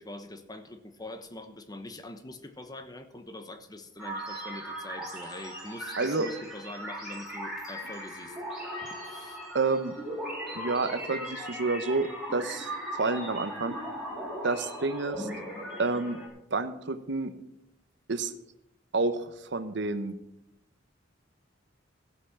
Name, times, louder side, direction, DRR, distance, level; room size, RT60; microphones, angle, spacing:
voice 1, 0.0-8.4 8.8-9.4, left 1 dB, 20° left, 8 dB, 1.0 m, -43 dB
sound 1, 4.0-16.3, equal, 5° right, 3.9 m, -38 dB
voice 2, 6.0-6.3 9.5-9.9 10.5-12.7 12.9-13.8 14.4-15.3 15.8-16.2 16.5-17.3 18.1-18.3 18.9-20.1, right 3 dB, 65° right, 11 dB, 0.9 m, -29 dB
14.5 x 8.2 x 5.8 m, 0.82 s
head